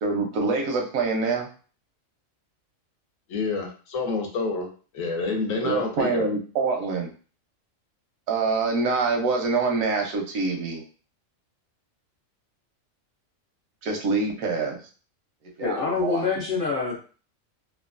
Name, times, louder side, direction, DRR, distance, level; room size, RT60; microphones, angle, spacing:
voice 1, 0.0-1.5 5.6-7.1 8.3-10.8 13.8-14.8 15.6-16.2, right 4 dB, 85° right, 2 dB, 1.1 m, -25 dB
voice 2, 3.3-4.7 4.9-6.3, left 3 dB, 75° left, 2 dB, 1.1 m, -28 dB
voice 3, 15.6-17.0, left 4 dB, 55° left, -2 dB, 0.6 m, -26 dB
3.0 x 2.3 x 2.4 m, 0.39 s
omnidirectional pair, 1.4 m